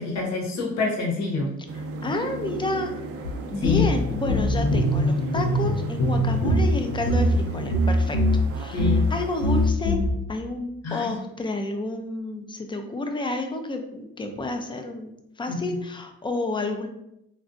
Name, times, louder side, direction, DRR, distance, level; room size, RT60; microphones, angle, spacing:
voice 1, 0.0-1.5 2.0-2.1 3.6-3.9 8.7-9.0 10.8-11.1 15.5-15.7, left 5 dB, 65° left, 0 dB, 0.9 m, -26 dB
voice 2, 1.7-2.9 3.5-8.2 8.6-10.0 10.3-16.9, left 2 dB, 15° left, 5 dB, 0.4 m, -30 dB
sound 1, 1.7-9.7, right 3 dB, 50° right, 0.4 m, -37 dB
sound 2, 3.2-3.3 3.6-8.5 8.8-9.1 9.4-10.1, equal, 90° left, 0.6 m, -22 dB
3.7 x 2.3 x 2.4 m, 0.81 s
cardioid pair, 90°, 30 cm